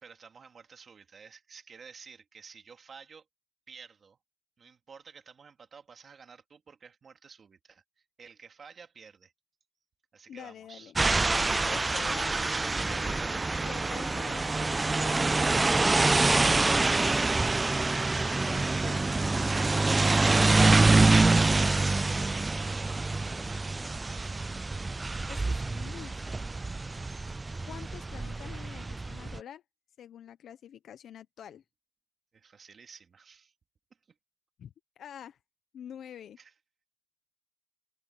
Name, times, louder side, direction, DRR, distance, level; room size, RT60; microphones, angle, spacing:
voice 1, 0.0-3.3 3.7-4.2 4.6-9.3 10.1-10.9 18.4-19.0 22.7-24.5 32.3-33.5 36.4-36.5, right 6 dB, 45° right, 3.1 m, -52 dB
voice 2, 10.3-11.0 11.3-12.4 12.9-17.6 18.4-19.1 20.0-22.1 24.2-24.3 25.3-26.6 27.2-27.4 27.7-29.6 30.0-31.6 34.6-35.4 35.7-36.4, left 9 dB, 65° left, 0.9 m, -47 dB
sound 1, 11.0-29.4, right 3 dB, 20° right, 0.4 m, -26 dB
cardioid pair, 90°, 0 cm